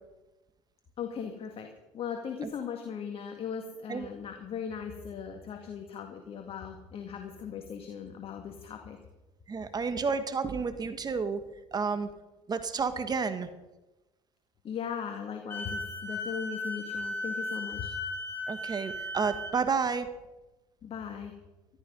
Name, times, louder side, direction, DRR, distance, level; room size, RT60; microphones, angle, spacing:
voice 1, 1.0-9.0 14.6-17.9 20.8-21.4, left 7 dB, 45° left, 4 dB, 2.0 m, -38 dB
voice 2, 9.5-11.4 11.7-12.1 12.5-13.5 18.5-20.1, right 5 dB, 30° right, 10 dB, 1.6 m, -30 dB
Wind instrument woodwind instrument, 15.5-19.6, left 2 dB, 15° left, 6.0 m, -36 dB
14.0 x 13.5 x 5.4 m, 1.0 s
hypercardioid pair, 75°, 13 cm